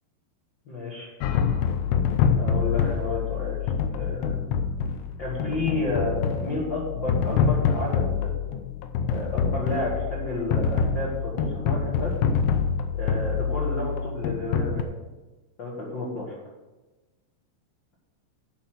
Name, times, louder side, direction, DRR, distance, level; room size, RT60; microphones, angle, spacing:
voice 1, 0.7-1.1 2.4-3.6 3.9-4.6 5.2-8.3 9.0-12.1 12.9-14.8 15.6-16.4, left 2 dB, 40° left, -6 dB, 1.8 m, -31 dB
sound 1, 1.2-14.8, left 6 dB, 85° left, 2.8 m, -26 dB
11.0 x 4.4 x 7.7 m, 1.2 s
omnidirectional pair, 4.7 m